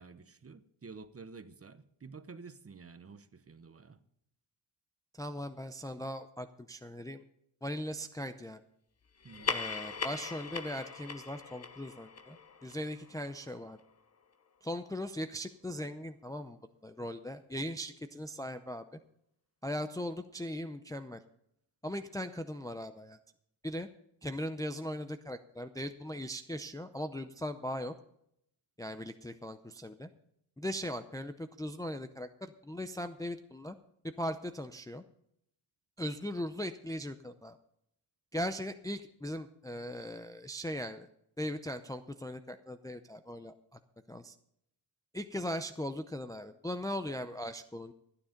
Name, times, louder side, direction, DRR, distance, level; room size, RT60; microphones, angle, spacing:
voice 1, 0.0-4.0 9.2-9.6, right 4 dB, 30° right, 0.9 m, -50 dB
voice 2, 5.1-7.2 7.6-8.6 9.5-13.8 14.6-19.0 19.6-21.2 21.8-23.2 23.6-23.9 24.2-27.9 28.8-30.1 30.6-33.8 34.2-35.0 36.0-37.6 38.3-41.1 41.4-43.8 44.1-44.4 45.1-47.9, equal, 10° left, 0.5 m, -39 dB
sound 1, 9.2-14.1, left 5 dB, 30° left, 0.9 m, -40 dB
14.5 x 10.0 x 5.1 m
wide cardioid pair, 120°, 48 cm